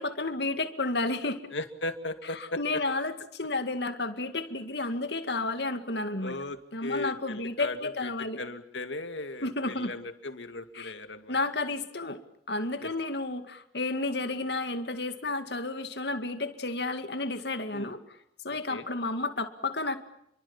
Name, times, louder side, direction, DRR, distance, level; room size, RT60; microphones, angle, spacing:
voice 1, 0.0-1.5 2.4-6.4 6.7-8.4 9.4-9.9 10.8-10.9 11.3-12.2 12.5-18.0 18.4-20.0, left 2 dB, 65° left, 8 dB, 2.2 m, -31 dB
voice 2, 1.5-2.8 6.2-8.1 8.4-11.4 12.8-12.9 17.7-17.9 18.5-18.9, left 2 dB, 85° left, 8 dB, 2.4 m, -37 dB
29.0 x 23.5 x 7.3 m, 0.76 s
head